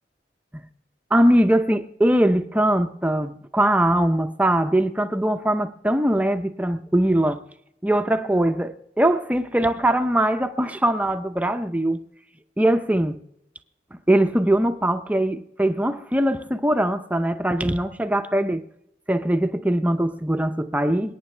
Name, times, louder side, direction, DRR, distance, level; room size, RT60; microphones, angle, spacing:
voice 1, 1.1-7.4 7.8-12.0 12.6-13.2 14.1-18.6 19.1-21.2, right 1 dB, 10° right, 0.6 m, -21 dB
28.0 x 9.3 x 3.3 m
head